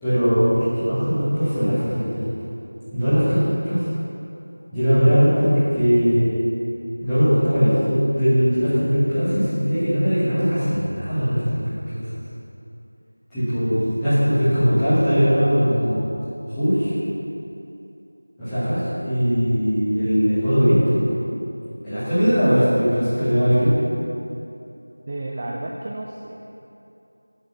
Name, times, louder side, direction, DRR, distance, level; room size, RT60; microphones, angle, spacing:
voice 1, 0.0-2.2 2.9-3.8 4.7-6.3 7.0-12.0 13.3-16.0 16.5-16.9 18.4-21.0 21.8-23.7, equal, 5° left, -20 dB, 2.0 m, -20 dB
voice 2, 25.0-26.4, right 2 dB, 25° right, -2 dB, 0.4 m, -32 dB
7.2 x 5.1 x 6.2 m, 2.8 s
figure-of-eight pair, 175°, 0 cm